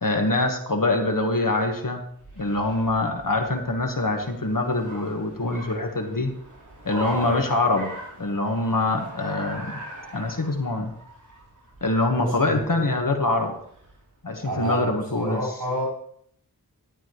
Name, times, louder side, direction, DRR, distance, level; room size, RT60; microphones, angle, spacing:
voice 1, 0.0-2.0 2.4-6.3 6.8-7.9 8.2-9.8 10.1-10.9 11.8-13.5 14.2-15.4, left 2 dB, 60° left, 4 dB, 1.5 m, -24 dB
Car, 2.0-14.1, right 1 dB, 55° right, 5.4 m, -43 dB
voice 2, 6.9-7.4 12.2-12.8 14.4-15.8, equal, 75° right, -5 dB, 5.2 m, -29 dB
12.5 x 11.0 x 3.2 m, 0.66 s
wide cardioid pair, 50°, 37 cm